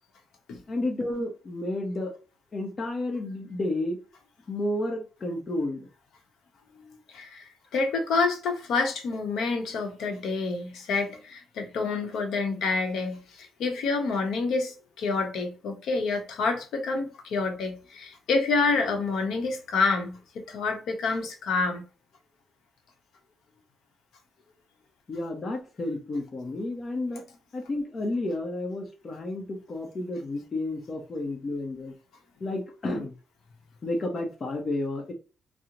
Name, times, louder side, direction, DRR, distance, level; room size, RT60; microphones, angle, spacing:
voice 1, 0.7-2.1 2.5-4.0 4.5-5.9 25.1-27.2 27.5-31.9 32.4-33.1 33.8-35.1, left 2 dB, 35° left, 0.7 m, -31 dB
voice 2, 7.1-20.2 20.5-21.8, left 4 dB, 80° left, 0.8 m, -28 dB
3.0 x 2.0 x 3.6 m
cardioid pair, 125°, 0 cm